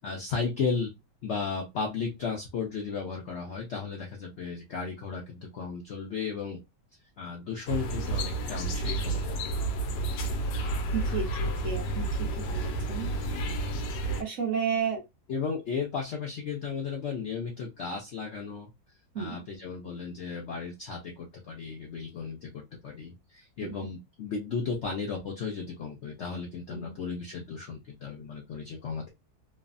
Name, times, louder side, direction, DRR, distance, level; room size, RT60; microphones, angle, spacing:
voice 1, 0.0-0.9 1.2-6.6 7.2-9.5 15.3-18.7 19.2-29.1, left 5 dB, 70° left, 0.6 m, -34 dB
sound 1, 7.7-14.2, right 2 dB, 90° left, 1.3 m, -30 dB
voice 2, 10.9-13.1 14.2-15.0 19.1-19.4 23.6-23.7 26.7-26.9, right 7 dB, 65° right, 0.8 m, -33 dB
3.1 x 2.0 x 2.4 m
omnidirectional pair, 1.8 m